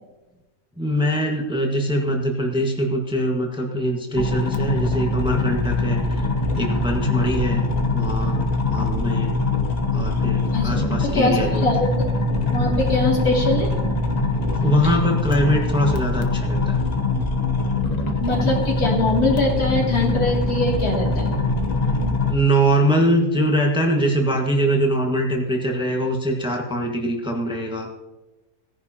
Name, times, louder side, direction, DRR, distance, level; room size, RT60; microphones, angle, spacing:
voice 1, 0.8-6.3 6.6-7.6 7.9-8.4 8.7-9.4 9.9-11.6 14.6-16.8 22.3-27.9, right 1 dB, 5° right, 0 dB, 1.3 m, -22 dB
sound 1, 4.1-22.3, left 2 dB, 30° left, 0.9 m, -22 dB
voice 2, 10.5-12.1 12.5-13.7 18.2-21.3, left 2 dB, 80° left, -3 dB, 3.2 m, -22 dB
17.5 x 10.5 x 2.8 m, 1.1 s
omnidirectional pair, 1.6 m